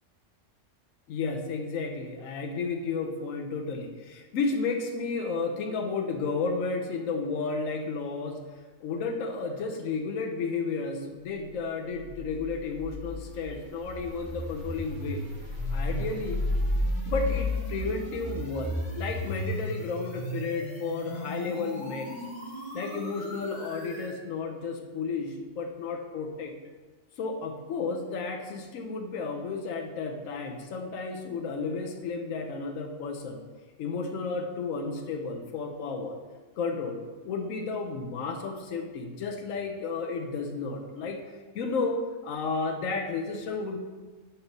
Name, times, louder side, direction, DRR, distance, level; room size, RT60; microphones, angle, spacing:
voice 1, 1.1-8.4 8.8-15.2 15.7-16.4 17.1-22.1 22.7-26.5 27.2-33.4 33.8-36.2 36.6-37.0 37.2-41.2 41.5-43.8, left 4 dB, 90° left, 4 dB, 1.1 m, -32 dB
sound 1, 12.0-24.2, left 1 dB, 30° left, 1.8 m, -33 dB
5.4 x 4.3 x 5.3 m, 1.3 s
omnidirectional pair, 1.3 m